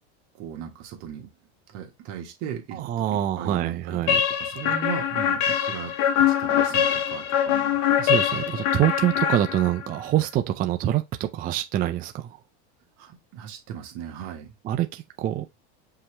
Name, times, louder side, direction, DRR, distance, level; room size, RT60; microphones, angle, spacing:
voice 1, 0.4-1.3 1.7-2.8 3.1-7.8 13.0-14.5, right 8 dB, 55° right, 1.5 m, -37 dB
voice 2, 2.7-4.2 8.0-12.4 14.6-15.4, right 12 dB, 25° right, 0.4 m, -25 dB
sound 1, 4.1-9.9, left 9 dB, 55° left, 0.9 m, -23 dB
5.5 x 2.9 x 3.3 m
supercardioid pair, 130°, 34 cm